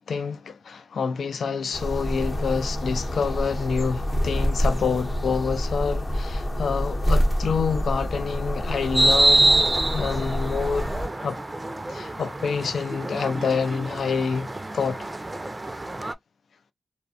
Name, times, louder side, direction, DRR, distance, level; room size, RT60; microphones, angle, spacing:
voice 1, 0.1-9.7 9.9-10.8 11.2-11.4 11.9-15.1, left 5 dB, 85° left, 0.3 m, -27 dB
sound 1, 1.7-11.1, equal, 45° left, 0.8 m, -27 dB
sound 2, 8.9-16.1, right 2 dB, 25° right, 0.4 m, -25 dB
2.5 x 2.1 x 2.6 m
cardioid pair, 60°, 0 cm